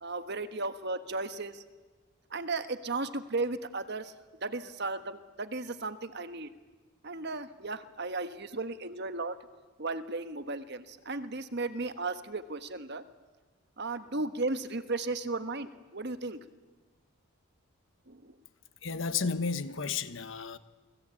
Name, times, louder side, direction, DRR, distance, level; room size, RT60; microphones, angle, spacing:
voice 1, 0.0-1.6 2.3-4.1 4.4-6.5 7.0-9.4 9.8-13.1 13.8-16.4 18.1-18.4, right 3 dB, 50° right, 11 dB, 1.3 m, -35 dB
voice 2, 18.8-20.6, left 5 dB, 55° left, 13 dB, 1.2 m, -32 dB
28.5 x 20.5 x 8.9 m, 1.3 s
head